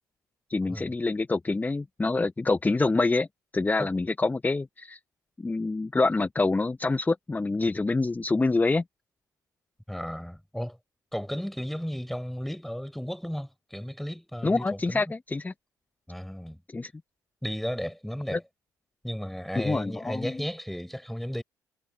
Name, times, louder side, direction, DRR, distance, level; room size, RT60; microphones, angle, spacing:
voice 1, 0.5-3.3 3.5-5.0 5.4-8.8 14.4-15.5 16.7-16.9 18.3-18.4 19.6-20.4, left 3 dB, 20° left, 0.8 m, -26 dB
voice 2, 9.9-10.8 11.1-15.0 16.1-16.6 17.4-18.4 19.0-21.4, equal, ahead, 5.4 m, -34 dB
hypercardioid pair, 50°, 9 cm